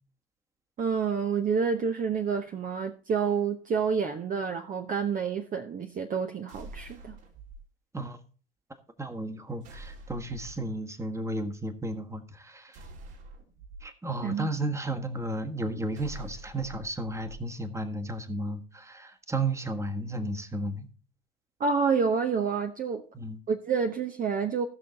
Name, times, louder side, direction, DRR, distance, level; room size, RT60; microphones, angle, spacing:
voice 1, 0.8-7.2 14.2-14.5 21.6-23.0 23.5-24.7, right 6 dB, 30° right, 1.1 m, -28 dB
sound 1, 6.5-7.6 9.6-10.7 12.7-13.8 15.9-17.4, right 2 dB, 55° right, 3.1 m, -45 dB
voice 2, 9.0-12.8 13.8-20.9 23.1-23.4, right 2 dB, 10° right, 1.5 m, -33 dB
16.5 x 6.3 x 4.1 m
figure-of-eight pair, 75°, 30 cm